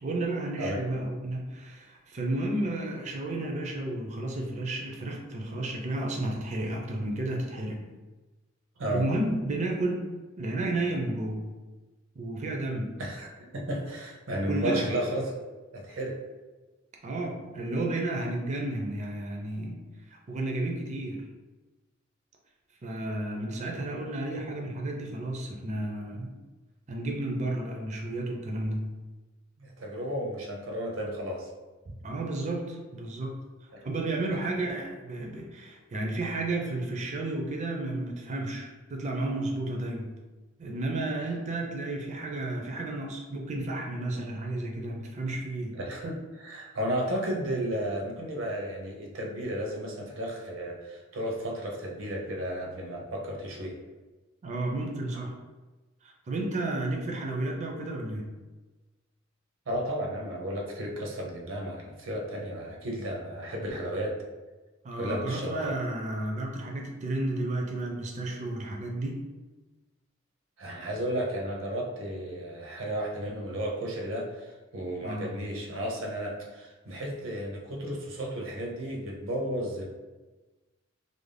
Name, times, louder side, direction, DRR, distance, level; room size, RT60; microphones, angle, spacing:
voice 1, 0.0-7.8 8.9-10.1 10.4-11.6 12.2-13.0 14.5-14.9 17.0-19.8 20.1-21.3 22.8-26.4 26.9-28.9 32.0-33.4 33.8-40.2 40.6-45.8 54.4-55.3 56.0-58.3 64.8-69.2 75.0-75.3, right 2 dB, 35° right, 0 dB, 0.4 m, -32 dB
voice 2, 0.6-0.9 8.8-9.0 13.0-15.3 15.7-16.2 29.6-31.5 33.7-33.8 34.3-34.4 45.7-53.7 59.7-64.2 65.0-65.7 70.6-79.8, equal, 75° right, -1 dB, 0.6 m, -33 dB
2.5 x 2.0 x 3.2 m, 1.2 s
head